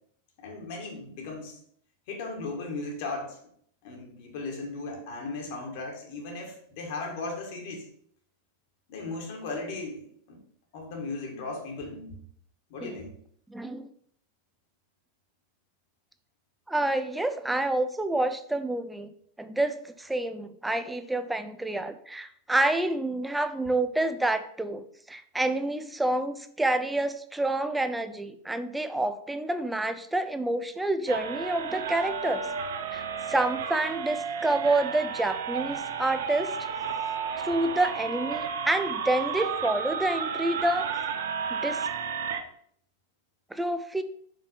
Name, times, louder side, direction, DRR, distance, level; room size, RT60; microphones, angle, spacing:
voice 1, 0.4-1.6 2.1-3.4 3.8-7.8 8.9-10.0 10.3-10.4 10.7-12.2 12.7-13.1, left 3 dB, 50° left, 1 dB, 1.6 m, -36 dB
voice 2, 13.5-13.9 16.7-19.1 19.4-32.4 32.9-33.0 33.3-36.5 37.4-40.9 41.5-41.9 43.5-44.0, right 2 dB, 5° right, 10 dB, 0.5 m, -28 dB
sound 1, 31.1-42.4, right 6 dB, 60° right, 0.6 m, -32 dB
5.7 x 5.1 x 4.4 m, 0.64 s
figure-of-eight pair, 90°, 0 cm